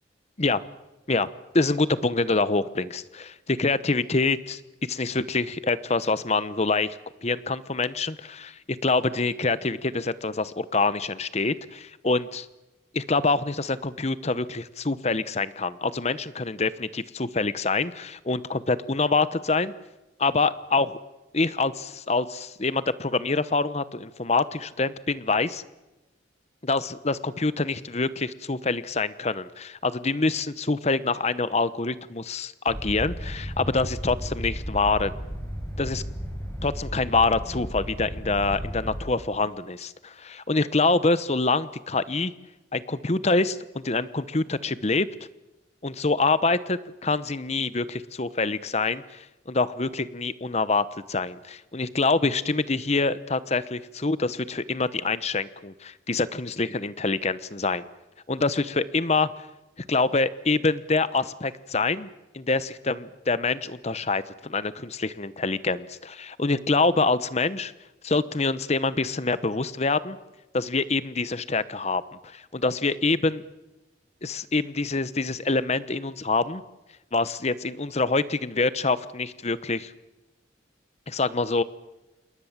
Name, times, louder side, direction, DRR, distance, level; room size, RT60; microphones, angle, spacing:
voice 1, 1.5-12.5 12.9-19.7 20.2-21.0 21.3-25.6 26.6-35.1 35.8-36.0 36.6-42.3 42.7-45.1 45.8-57.9 58.3-59.3 59.9-62.1 62.3-67.7 68.0-70.2 70.5-72.0 72.3-73.4 74.2-76.6 77.1-79.9 81.1-81.6, left 3 dB, 35° left, 15 dB, 1.0 m, -26 dB
sound 1, 32.7-39.0, equal, 15° left, 6.8 m, -34 dB
28.0 x 21.0 x 7.4 m, 1.0 s
head